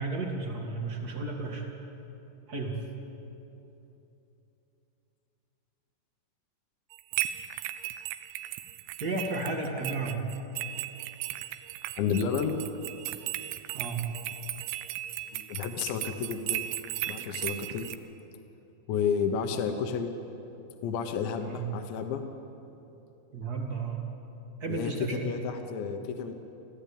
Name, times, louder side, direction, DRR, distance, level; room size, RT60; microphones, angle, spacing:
voice 1, 0.0-1.7 2.5-2.8 9.0-10.2 13.7-14.0 21.4-21.6 23.3-24.0 24.6-25.3, right 3 dB, 40° right, 1 dB, 1.4 m, -33 dB
sound 1, 6.9-18.0, right 14 dB, 85° right, 3.0 m, -36 dB
voice 2, 12.0-12.6 15.3-16.7 17.1-17.9 18.9-20.1 20.8-22.2 24.7-26.3, left 6 dB, 85° left, 6 dB, 3.4 m, -31 dB
25.5 x 15.0 x 8.7 m, 3.0 s
omnidirectional pair, 5.1 m